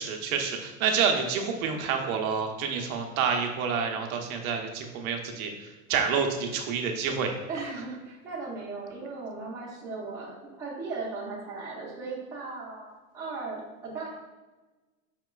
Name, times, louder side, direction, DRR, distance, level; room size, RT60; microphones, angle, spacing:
voice 1, 0.0-5.5 5.9-7.3, right 6 dB, 75° right, 3 dB, 0.7 m, -28 dB
voice 2, 7.5-10.3 10.6-12.9 13.1-14.1, right 3 dB, 10° right, -7 dB, 0.6 m, -37 dB
5.7 x 2.9 x 2.3 m, 1.2 s
supercardioid pair, 160°, 42 cm